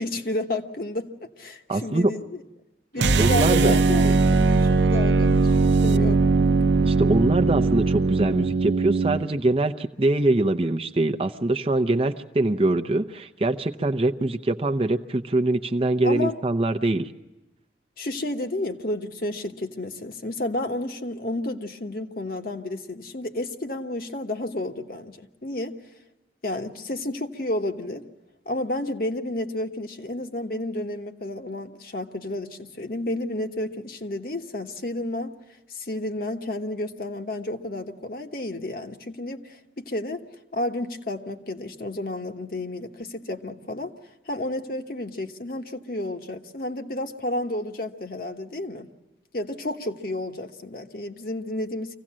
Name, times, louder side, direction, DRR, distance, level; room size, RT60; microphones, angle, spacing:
voice 1, 0.0-2.4 2.9-6.2 16.0-16.4 18.0-25.7 26.4-28.1 28.4-35.3 35.7-40.2 40.5-43.9 44.3-48.9 49.3-52.0, left 1 dB, 55° left, 4 dB, 1.2 m, -31 dB
voice 2, 1.7-2.1 3.2-3.8 6.8-17.1, right 2 dB, 30° right, 7 dB, 0.6 m, -23 dB
sound 1, 3.0-9.2, right 3 dB, 85° right, 0.7 m, -20 dB
25.0 x 16.5 x 7.4 m, 1.1 s
head